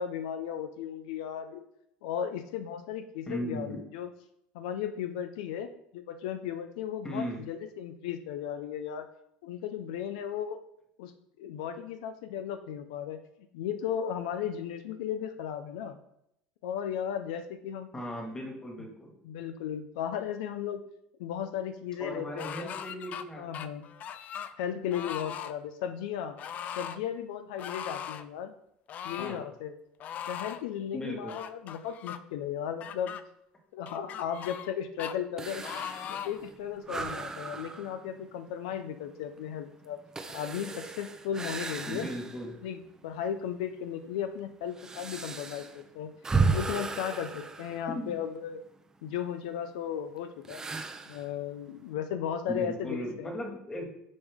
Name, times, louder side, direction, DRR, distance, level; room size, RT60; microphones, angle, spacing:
voice 1, 0.0-1.6 2.0-4.1 4.5-9.1 9.4-10.6 11.0-11.1 11.4-13.2 13.5-16.0 16.6-17.9 19.2-20.8 21.2-22.7 23.4-23.8 24.6-26.4 26.8-28.5 29.0-29.8 30.2-33.2 33.7-35.6 36.1-40.0 40.3-42.1 42.6-46.1 46.5-48.6 49.0-50.6 51.1-53.3, left 9 dB, 90° left, 9 dB, 0.6 m, -35 dB
voice 2, 3.3-3.8 7.0-7.4 17.9-19.1 22.0-23.4 29.2-29.4 30.9-31.3 41.9-42.5 47.9-48.0 52.5-53.9, equal, 15° left, 0 dB, 2.0 m, -37 dB
sound 1, 22.4-23.2 23.5-24.5 24.9-25.5 26.4-27.0 27.6-28.3 28.9-29.4 30.0-30.6 31.3-32.2 32.8-33.2 33.9-34.7 35.0-35.1 35.6-36.4 37.0-37.1, left 9 dB, 40° left, 0.4 m, -39 dB
sound 2, 35.4-42.6 43.0-43.1 43.8-48.5 50.4-51.3, right 4 dB, 15° right, 0.6 m, -35 dB
7.7 x 5.4 x 3.6 m, 0.77 s
cardioid pair, 130°, 4 cm